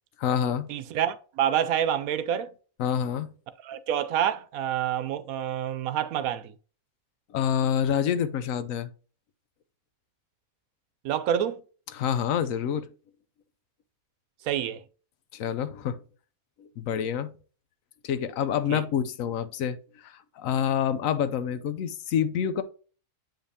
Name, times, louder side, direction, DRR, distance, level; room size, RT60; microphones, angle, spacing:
voice 1, 0.2-0.7 2.8-3.3 7.3-8.9 11.9-12.9 15.3-16.0 16.6-17.3 18.0-22.6, left 8 dB, 75° left, 1.0 m, -27 dB
voice 2, 0.7-2.5 3.6-6.5 11.0-11.6 14.4-14.8 18.7-18.8, right 10 dB, 80° right, 1.0 m, -27 dB
7.9 x 5.1 x 2.8 m
omnidirectional pair, 1.5 m